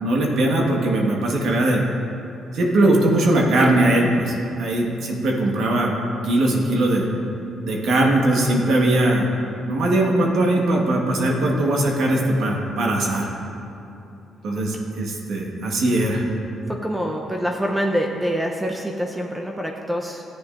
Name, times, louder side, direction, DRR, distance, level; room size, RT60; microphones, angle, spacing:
voice 1, 0.0-1.8 2.5-5.9 6.2-7.0 7.6-9.3 9.6-13.3 14.4-16.2, right 1 dB, 70° right, -1 dB, 1.6 m, -20 dB
voice 2, 16.7-20.2, equal, 10° right, 1 dB, 0.7 m, -25 dB
14.0 x 9.3 x 2.6 m, 2.8 s
cardioid pair, 90°, 0 cm